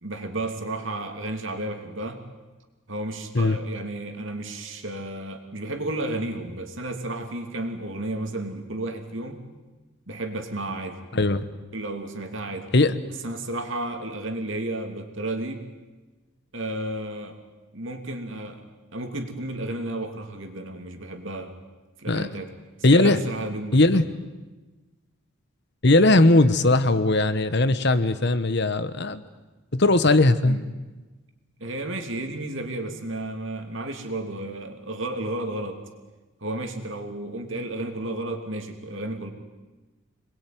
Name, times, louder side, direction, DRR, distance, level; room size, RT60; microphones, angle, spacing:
voice 1, 0.0-2.2 2.9-9.4 10.1-11.0 11.7-12.7 13.2-15.6 16.5-17.4 17.7-18.6 18.9-21.5 22.0-22.5 22.9-23.8 30.4-30.6 31.6-35.8 36.4-39.3, right 1 dB, 60° right, 5 dB, 2.9 m, -32 dB
voice 2, 11.1-11.4 12.7-13.0 22.1-22.3 22.8-23.2 23.7-24.1 25.8-29.2 29.7-30.6, left 2 dB, 50° left, 12 dB, 1.2 m, -19 dB
26.5 x 21.0 x 9.4 m, 1.2 s
head